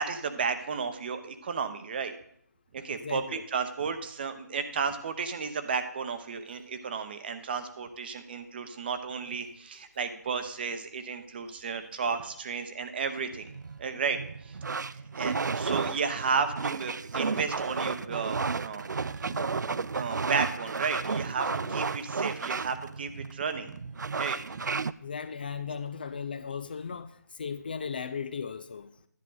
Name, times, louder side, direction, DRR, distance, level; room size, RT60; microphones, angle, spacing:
voice 1, 0.0-2.1 2.7-13.5 13.8-14.6 14.9-23.8 24.2-24.4 25.7-25.8, right 5 dB, 35° right, 0.8 m, -33 dB
voice 2, 3.0-3.4 11.5-11.7 17.3-17.4 21.5-21.7 25.0-28.9, left 6 dB, 30° left, 0.3 m, -37 dB
sound 1, 13.3-24.9, right 4 dB, 80° right, 0.4 m, -33 dB
10.5 x 10.5 x 3.9 m
figure-of-eight pair, 160°, 10 cm